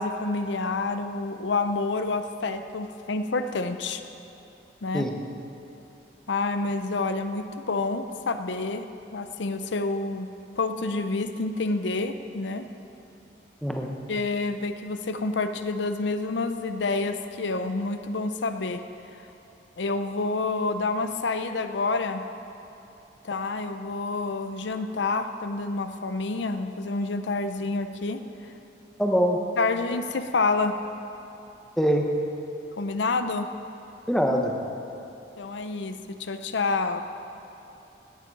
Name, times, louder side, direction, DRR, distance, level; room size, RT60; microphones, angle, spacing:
voice 1, 0.0-4.0 4.8-5.1 6.3-8.9 9.1-10.3 10.6-12.7 14.1-18.8 19.8-22.2 23.2-28.2 29.6-30.8 32.8-33.5 35.4-37.0, left 3 dB, 75° left, 9 dB, 0.6 m, -28 dB
voice 2, 13.6-14.0 29.0-29.4 31.8-32.1 34.1-34.6, equal, ahead, 1 dB, 0.9 m, -23 dB
17.5 x 8.9 x 4.7 m, 2.9 s
head